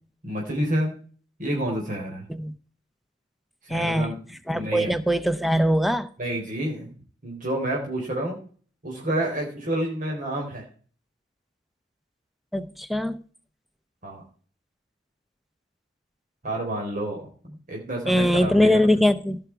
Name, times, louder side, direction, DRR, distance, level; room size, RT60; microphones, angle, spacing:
voice 1, 0.2-1.0 1.4-2.2 3.7-4.2 4.5-5.0 6.2-6.9 7.2-8.4 8.8-10.7 14.0-14.2 16.4-18.9, right 1 dB, 50° right, 3.9 m, -29 dB
voice 2, 3.7-4.1 4.5-6.1 12.5-13.2 18.1-19.4, equal, ahead, 0.8 m, -21 dB
17.0 x 6.2 x 4.6 m
head